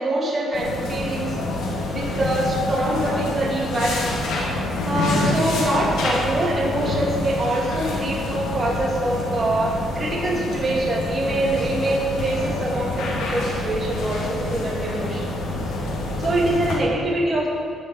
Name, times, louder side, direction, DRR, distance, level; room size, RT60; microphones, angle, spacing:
voice 1, 0.0-1.5 1.9-4.2 4.9-15.3 16.2-17.5, right 1 dB, 35° right, -3 dB, 2.5 m, -24 dB
sound 1, 0.5-16.8, left 2 dB, 85° left, 2.8 m, -27 dB
11.5 x 6.6 x 7.4 m, 2.3 s
cardioid pair, 90°, 0 cm